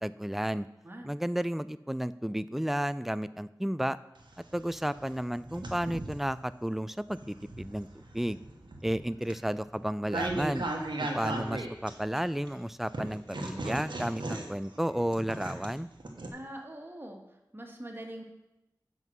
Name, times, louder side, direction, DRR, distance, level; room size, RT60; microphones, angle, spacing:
voice 1, 0.0-0.7 1.0-4.0 4.5-8.4 8.8-10.7 11.0-15.9, equal, 5° right, 15 dB, 0.3 m, -32 dB
sound 1, 4.2-6.3 6.9-12.5 12.9-16.3, right 2 dB, 85° right, 1.2 m, -37 dB
voice 2, 16.3-17.3 17.5-18.2, right 1 dB, 30° right, 1 dB, 1.7 m, -43 dB
7.9 x 5.4 x 6.2 m, 0.93 s
wide cardioid pair, 45°, 8 cm